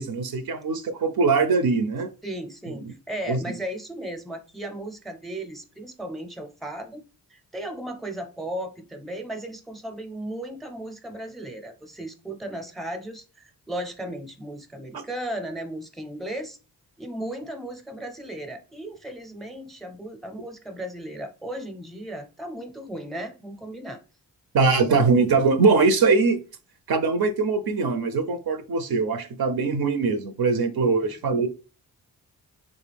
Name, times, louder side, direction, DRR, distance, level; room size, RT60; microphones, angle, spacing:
voice 1, 0.0-2.1 3.3-3.4 24.5-26.4 26.9-31.5, right 4 dB, 65° right, 0.6 m, -22 dB
voice 2, 2.2-7.0 7.3-16.6 17.0-24.0 31.0-31.1, right 1 dB, ahead, 0.6 m, -36 dB
3.6 x 2.2 x 3.4 m
cardioid pair, 65°, 40 cm